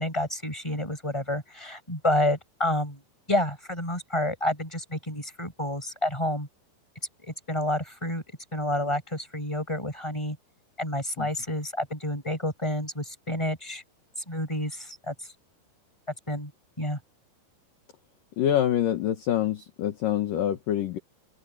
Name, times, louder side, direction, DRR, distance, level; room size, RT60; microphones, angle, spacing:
voice 1, 0.0-3.0 3.3-6.5 7.2-8.2 8.5-10.4 10.8-13.8 14.3-15.1 16.3-16.5 16.8-17.0, left 1 dB, 5° left, 7.2 m, -29 dB
voice 2, 18.4-21.0, left 11 dB, 60° left, 2.6 m, -26 dB
omnidirectional pair, 5.3 m